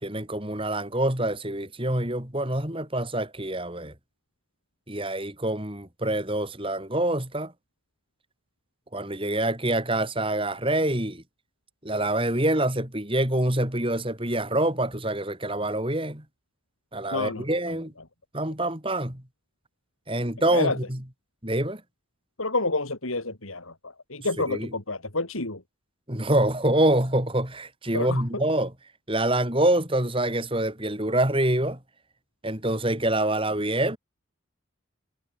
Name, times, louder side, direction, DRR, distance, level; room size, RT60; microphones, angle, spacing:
voice 1, 0.0-3.9 4.9-7.5 8.9-11.2 11.8-16.2 16.9-17.9 18.3-19.2 20.1-21.0 21.4-21.8 24.5-24.7 26.1-28.7 29.1-31.8 32.4-34.0, right 1 dB, 25° right, 4.3 m, -26 dB
voice 2, 17.1-17.4 20.5-20.8 22.4-25.6 27.9-28.2, left 3 dB, 85° left, 4.2 m, -29 dB
head